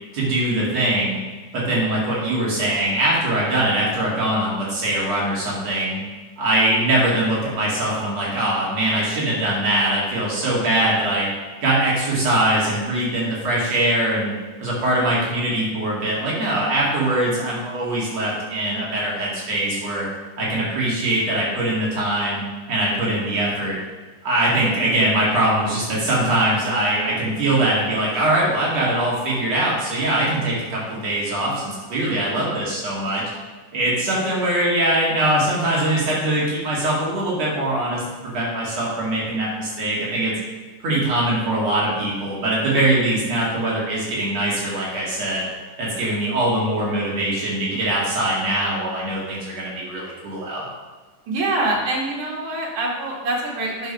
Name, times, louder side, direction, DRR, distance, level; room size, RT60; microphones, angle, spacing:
voice 1, 0.1-1.2 1.5-6.0 6.4-11.3 11.6-14.3 14.6-20.1 20.4-22.4 22.7-23.8 24.2-33.2 33.7-40.3 40.8-45.5 45.8-50.7, right 1 dB, 55° right, -5 dB, 3.3 m, -22 dB
voice 2, 51.3-53.9, right 2 dB, 75° right, -2 dB, 3.5 m, -25 dB
10.0 x 5.7 x 5.5 m, 1.3 s
omnidirectional pair, 3.6 m